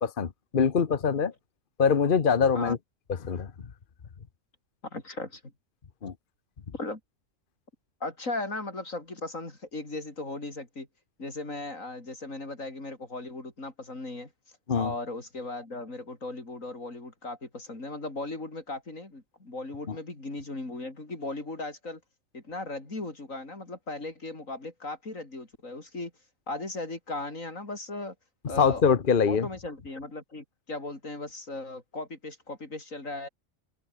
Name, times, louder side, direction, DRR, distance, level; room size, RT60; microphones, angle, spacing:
voice 1, 0.0-1.3 1.8-2.8 3.2-3.5 6.0-6.1 14.7-14.9 19.9-20.0 28.6-29.5, left 6 dB, 45° left, 1.2 m, -23 dB
voice 2, 4.9-5.4 6.7-7.0 8.0-10.9 11.2-14.3 14.8-22.0 22.3-26.1 26.5-28.2 28.5-28.8 29.3-33.3, left 2 dB, 85° left, 5.4 m, -37 dB
open air
omnidirectional pair, 1.3 m